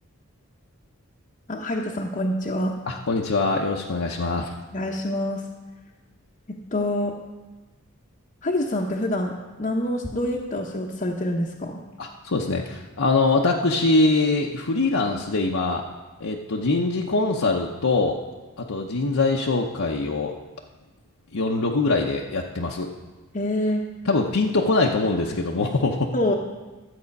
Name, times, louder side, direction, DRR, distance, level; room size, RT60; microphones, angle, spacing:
voice 1, 1.5-2.8 4.7-5.4 6.5-7.2 8.4-9.3 9.6-11.8 23.3-23.9 26.1-26.3, left 1 dB, 35° left, -2 dB, 0.8 m, -26 dB
voice 2, 2.9-4.5 12.0-15.8 16.2-18.2 18.6-20.3 21.3-22.9 24.1-26.1, left 3 dB, 65° left, -1 dB, 0.8 m, -23 dB
12.5 x 7.6 x 5.3 m, 1.2 s
head